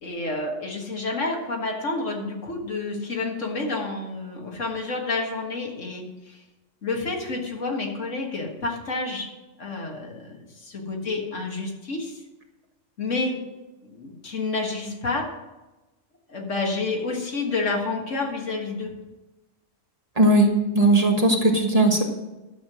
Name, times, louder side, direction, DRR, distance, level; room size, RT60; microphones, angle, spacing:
voice 1, 0.0-6.4 6.8-9.3 9.6-12.2 13.0-13.4 13.8-15.3 16.3-18.9, left 3 dB, 70° left, 1 dB, 2.0 m, -29 dB
voice 2, 20.2-22.0, right 1 dB, 30° right, 1 dB, 1.4 m, -18 dB
11.5 x 7.4 x 6.1 m, 1.1 s
omnidirectional pair, 1.3 m